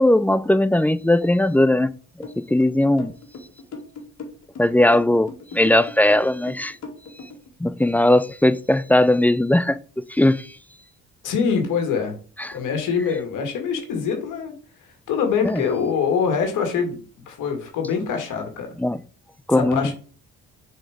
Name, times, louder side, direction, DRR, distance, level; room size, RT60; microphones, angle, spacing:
voice 1, 0.0-1.9 2.4-3.1 4.6-6.8 7.6-9.8 10.1-10.5 12.4-12.6 15.4-15.6 18.8-19.0 19.5-19.9, left 1 dB, 5° left, 0.3 m, -18 dB
sound 1, 2.2-7.5, left 3 dB, 55° left, 2.0 m, -38 dB
voice 2, 11.2-12.1 12.5-14.5 15.1-17.0 17.3-18.7 19.5-19.9, left 6 dB, 85° left, 1.8 m, -24 dB
6.4 x 4.3 x 4.9 m
cardioid pair, 90°, 30 cm